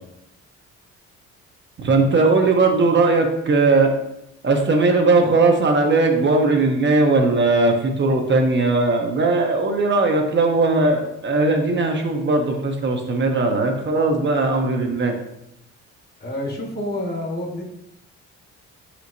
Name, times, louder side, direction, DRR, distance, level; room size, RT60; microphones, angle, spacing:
voice 1, 1.8-3.9 4.4-15.2, right 3 dB, 40° right, 3 dB, 0.6 m, -18 dB
voice 2, 16.2-17.6, left 1 dB, 35° left, 0 dB, 1.0 m, -28 dB
4.4 x 3.9 x 2.6 m, 0.83 s
cardioid pair, 90°, 30 cm